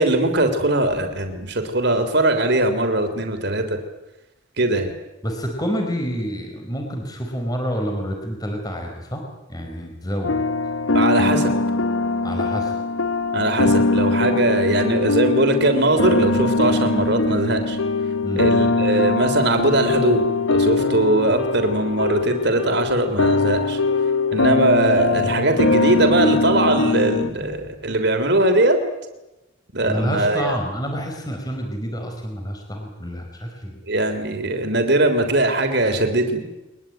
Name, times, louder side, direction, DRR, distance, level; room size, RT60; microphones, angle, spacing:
voice 1, 0.0-3.8 4.6-4.9 10.9-11.5 13.3-17.8 18.3-20.2 20.5-23.8 24.3-28.8 29.7-30.6 33.9-36.4, right 1 dB, 55° right, 7 dB, 3.5 m, -20 dB
voice 2, 5.2-9.2 9.5-10.4 12.2-12.8 18.2-18.5 29.8-33.8, equal, 20° left, 2 dB, 4.7 m, -28 dB
sound 1, 10.2-27.3, left 3 dB, 80° left, 1.0 m, -21 dB
23.0 x 21.5 x 9.2 m, 1.0 s
head